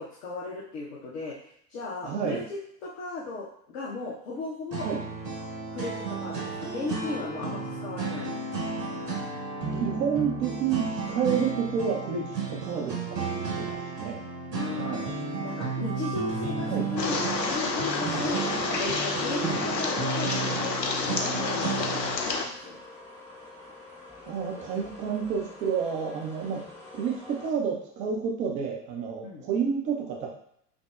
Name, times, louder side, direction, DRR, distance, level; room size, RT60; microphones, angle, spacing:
voice 1, 0.0-3.5 3.7-4.9 5.7-8.3 14.5-15.0 15.4-18.4 18.8-22.8 29.2-29.5, left 3 dB, 55° left, -5 dB, 0.9 m, -36 dB
voice 2, 2.0-2.4 4.8-5.0 9.7-13.2 13.6-14.2 14.7-15.1 16.6-16.9 18.0-18.3 19.4-19.6 24.3-26.6 26.9-30.3, right 6 dB, 15° right, 0 dB, 0.4 m, -30 dB
sound 1, 4.7-22.2, right 4 dB, 75° right, 1.4 m, -33 dB
sound 2, 16.6-27.5, left 2 dB, 5° left, 0.7 m, -46 dB
sound 3, 17.0-22.5, left 4 dB, 90° left, 0.6 m, -29 dB
5.9 x 2.0 x 2.4 m, 0.70 s
figure-of-eight pair, 90°, 49 cm